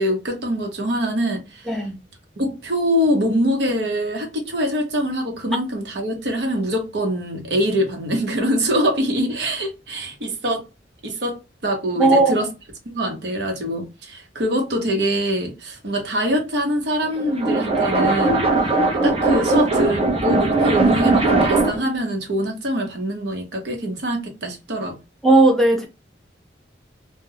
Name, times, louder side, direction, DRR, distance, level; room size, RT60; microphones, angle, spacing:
voice 1, 0.0-1.8 2.4-10.6 11.0-12.5 12.9-18.5 19.0-25.0, equal, 75° right, 0.8 m, -24 dB
voice 2, 12.0-12.4 25.2-25.9, right 2 dB, ahead, 0.5 m, -15 dB
sound 1, 17.0-21.9, right 2 dB, 35° right, 0.7 m, -19 dB
2.2 x 2.1 x 3.2 m
head